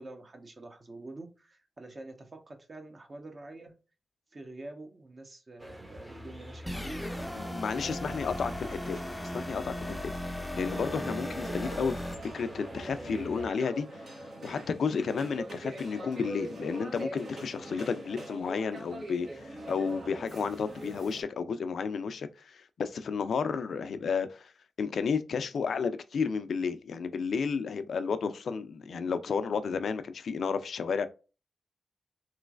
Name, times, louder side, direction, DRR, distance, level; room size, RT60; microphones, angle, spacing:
voice 1, 0.0-3.7 4.3-8.9, right 2 dB, 45° right, 1.0 m, -47 dB
sound 1, 5.6-13.5, equal, 20° right, 0.9 m, -47 dB
sound 2, 6.7-12.1, left 1 dB, 5° left, 0.5 m, -37 dB
voice 2, 7.4-9.0 9.3-13.9 14.4-24.5 24.8-31.1, left 5 dB, 75° left, 0.4 m, -32 dB
sound 3, 10.7-21.2, right 1 dB, 70° right, 1.3 m, -42 dB
3.1 x 3.1 x 2.4 m
supercardioid pair, 45°, 0 cm